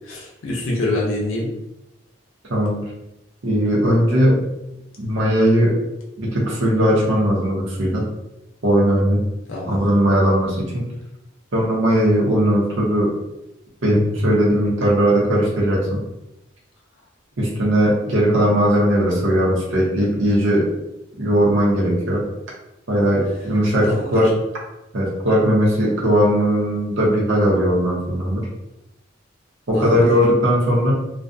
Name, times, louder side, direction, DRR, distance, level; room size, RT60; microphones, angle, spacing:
voice 1, 0.1-1.5 9.5-9.8 23.0-23.1 23.9-24.2 29.7-30.1, left 2 dB, 80° left, -3 dB, 0.5 m, -25 dB
voice 2, 2.5-2.8 3.4-4.4 5.0-5.7 6.2-8.0 8.6-9.3 9.7-10.8 11.5-13.1 13.8-16.0 17.4-20.7 21.2-22.2 22.9-24.3 24.9-28.5 29.7-30.9, equal, 70° right, -4 dB, 0.7 m, -18 dB
2.4 x 2.2 x 2.5 m, 0.90 s
head